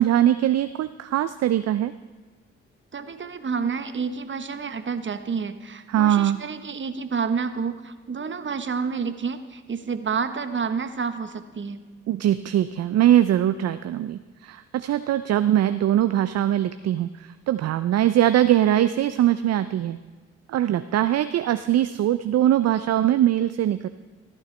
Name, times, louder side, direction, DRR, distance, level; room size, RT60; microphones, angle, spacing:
voice 1, 0.0-1.9 5.9-6.4 12.1-20.0 20.5-23.9, right 12 dB, 50° right, 12 dB, 0.5 m, -21 dB
voice 2, 2.9-11.8, right 5 dB, 35° right, 10 dB, 1.1 m, -29 dB
14.5 x 11.5 x 3.3 m, 1.3 s
hypercardioid pair, 40°, 32 cm